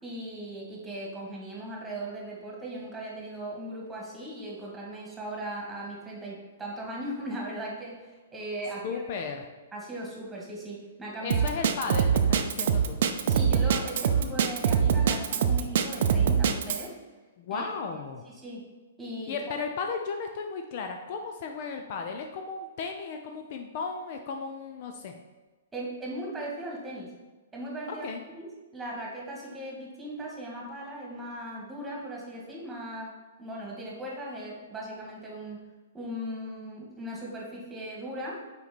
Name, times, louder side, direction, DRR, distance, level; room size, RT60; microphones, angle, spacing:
voice 1, 0.0-9.0 9.7-11.5 13.3-16.9 17.5-18.0 18.4-18.7 19.0-19.4 25.7-27.1 27.5-28.1 28.4-28.5 28.7-33.1 33.4-35.7 35.9-38.4, right 1 dB, 10° right, -3 dB, 1.8 m, -38 dB
voice 2, 8.8-9.4 11.2-13.0 17.4-18.2 19.3-25.1 27.9-28.2, left 5 dB, 45° left, 4 dB, 0.6 m, -35 dB
Drum kit, 11.3-16.9, right 7 dB, 55° right, 0.5 m, -23 dB
5.7 x 4.6 x 4.2 m, 1.2 s
figure-of-eight pair, 115°, 0 cm